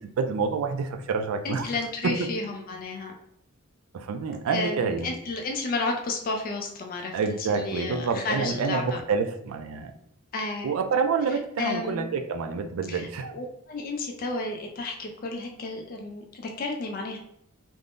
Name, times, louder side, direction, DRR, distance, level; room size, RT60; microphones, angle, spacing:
voice 1, 0.0-1.7 2.0-2.2 3.9-5.1 7.1-9.9 10.6-13.3, right 5 dB, 65° right, 7 dB, 0.3 m, -28 dB
voice 2, 1.4-3.1 4.5-9.0 10.3-10.7 11.3-12.1 12.9-17.2, left 3 dB, 40° left, 2 dB, 0.3 m, -32 dB
3.4 x 2.0 x 2.4 m, 0.76 s
head